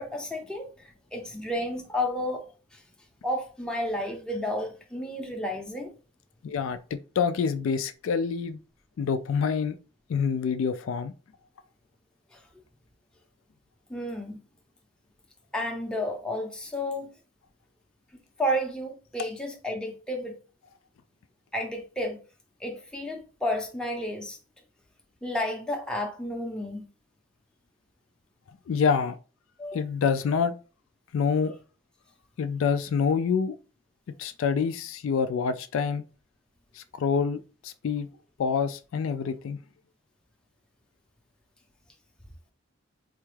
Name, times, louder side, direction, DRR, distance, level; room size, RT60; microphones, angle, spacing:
voice 1, 0.0-2.8 3.2-5.9 12.3-12.4 13.9-14.4 15.5-17.1 18.4-20.4 21.5-22.2 22.6-24.4 25.2-26.8 29.6-29.8, left 1 dB, 5° left, 0.6 m, -32 dB
voice 2, 6.4-8.6 9.0-9.8 10.1-11.1 28.7-29.2 29.7-30.5 31.1-31.6 32.4-33.5 34.2-36.0 36.7-38.1 38.4-39.6, left 6 dB, 65° left, 0.3 m, -27 dB
4.1 x 2.3 x 3.2 m
head